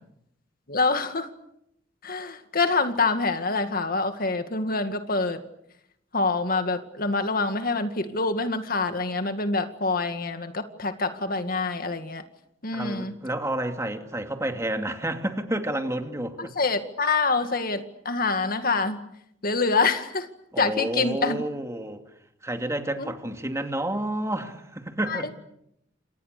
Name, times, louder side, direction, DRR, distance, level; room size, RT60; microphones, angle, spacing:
voice 1, 0.7-1.3 2.0-5.4 6.1-12.2 12.6-13.1 16.4-19.0 19.4-20.3 20.6-21.4 23.0-23.1 25.1-25.3, left 3 dB, 50° left, 2.0 m, -26 dB
voice 2, 12.7-16.5 20.5-22.0 22.4-25.3, right 1 dB, 15° right, 2.6 m, -30 dB
30.0 x 27.0 x 6.8 m
head